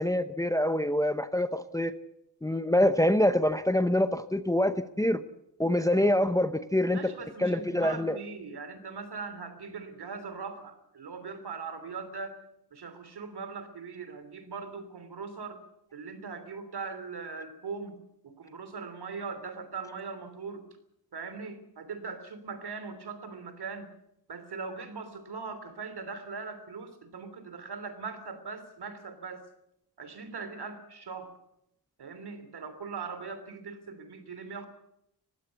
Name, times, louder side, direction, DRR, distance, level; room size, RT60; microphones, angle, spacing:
voice 1, 0.0-1.9 2.4-5.2 5.6-7.1 7.4-8.2, left 1 dB, 10° left, 0.7 m, -25 dB
voice 2, 6.9-12.4 12.7-15.6 15.9-20.6 21.1-23.9 24.3-29.4 30.0-31.3 32.0-34.7, right 5 dB, 70° right, 3.2 m, -40 dB
20.5 x 15.5 x 8.2 m
wide cardioid pair, 160°, 41 cm